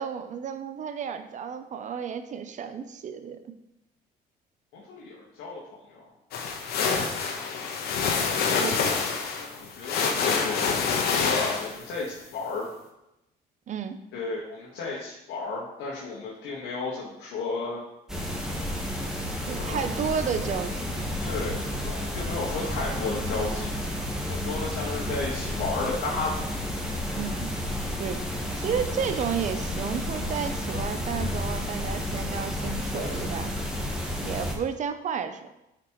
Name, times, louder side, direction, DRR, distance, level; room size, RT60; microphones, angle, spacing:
voice 1, 0.0-3.4 6.8-7.1 8.6-8.7 13.7-14.0 19.5-20.8 27.2-27.5 28.0-28.2 28.6-33.5 34.2-35.5, right 7 dB, 45° right, 10 dB, 0.7 m, -32 dB
voice 2, 4.7-6.0 8.2-8.9 9.4-12.6 14.1-17.8 19.6-19.8 21.2-23.8 24.2-26.4 32.9-33.2, left 3 dB, 85° left, -6 dB, 1.7 m, -33 dB
sound 1, 6.3-12.0, left 5 dB, 70° left, 1.2 m, -27 dB
sound 2, 18.1-34.5, left 1 dB, 5° right, 1.4 m, -31 dB
9.6 x 5.2 x 3.2 m, 0.90 s
cardioid pair, 110°, 17 cm